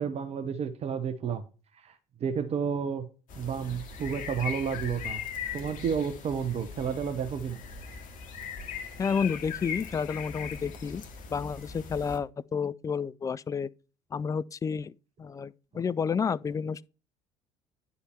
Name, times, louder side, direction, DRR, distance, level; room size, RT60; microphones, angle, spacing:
voice 1, 0.0-1.4 1.7-3.1 3.4-5.2 5.5-7.6, right 7 dB, 40° right, 0.9 m, -31 dB
sound 1, 3.3-12.2, left 6 dB, 50° left, 2.1 m, -39 dB
voice 2, 9.0-11.0 11.3-13.7 14.1-16.9, left 6 dB, 20° left, 0.4 m, -31 dB
9.7 x 5.6 x 4.5 m
figure-of-eight pair, 60°, 17 cm